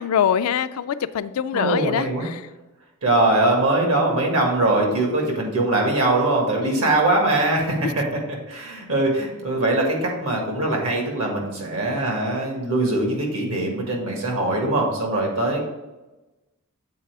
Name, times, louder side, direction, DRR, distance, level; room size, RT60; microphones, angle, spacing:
voice 1, 0.0-2.5 6.6-6.9 7.8-7.9, left 8 dB, 75° left, 13 dB, 0.3 m, -24 dB
voice 2, 1.5-2.3 3.0-8.2 8.5-15.6, right 2 dB, 70° right, 0 dB, 1.7 m, -22 dB
7.6 x 4.1 x 4.6 m, 1.1 s
head